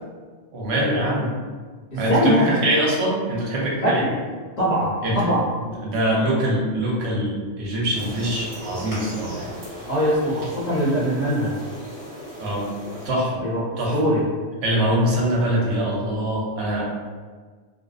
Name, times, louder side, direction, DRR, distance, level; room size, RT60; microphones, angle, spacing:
voice 1, 0.5-1.3 2.0-4.1 5.0-5.2 5.8-9.5 12.4-12.6 13.0-13.4 13.8-14.0 14.6-16.8, equal, 75° right, -4 dB, 0.9 m, -23 dB
voice 2, 1.9-2.6 3.8-4.1 4.6-5.4 9.9-11.5 13.4-14.2, equal, 45° left, -8 dB, 0.6 m, -22 dB
sound 1, 7.9-13.1, equal, 55° right, 1.4 m, -37 dB
2.5 x 2.1 x 2.3 m, 1.5 s
omnidirectional pair, 1.1 m